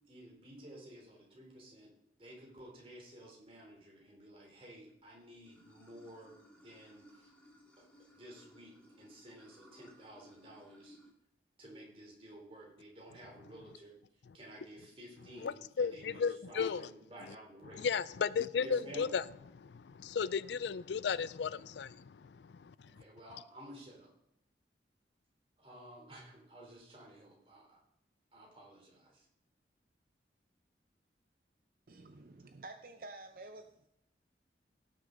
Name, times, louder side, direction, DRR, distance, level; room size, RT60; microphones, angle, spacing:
voice 1, 0.1-1.9 2.2-7.3 7.8-7.9 8.1-11.0 11.6-14.0 14.3-17.8 18.6-19.1 23.0-24.1 25.6-27.8 28.3-29.3, right 1 dB, 30° right, 3.6 m, -53 dB
Water / Sink (filling or washing), 5.4-11.1, left 1 dB, 5° left, 1.9 m, -61 dB
voice 2, 15.4-16.9 17.3-17.4 17.7-19.2 19.5-23.0, left 6 dB, 75° left, 0.4 m, -35 dB
voice 3, 31.9-33.8, right 2 dB, 50° right, 0.6 m, -50 dB
17.5 x 6.6 x 4.0 m
head